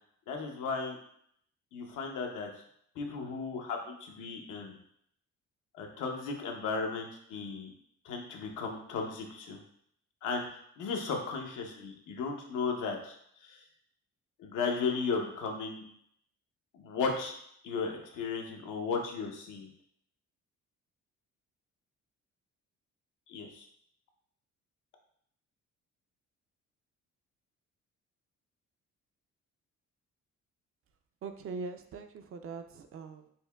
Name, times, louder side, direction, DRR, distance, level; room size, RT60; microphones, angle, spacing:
voice 1, 0.3-1.0 1.7-2.5 3.0-4.8 5.8-7.7 8.0-9.6 10.2-13.6 14.4-15.8 16.7-17.3 17.6-19.7 23.3-23.6, left 4 dB, 85° left, 2 dB, 0.7 m, -35 dB
voice 2, 31.2-33.3, right 4 dB, 50° right, 8 dB, 0.4 m, -42 dB
5.4 x 2.2 x 2.2 m, 0.68 s
cardioid pair, 90°, 30 cm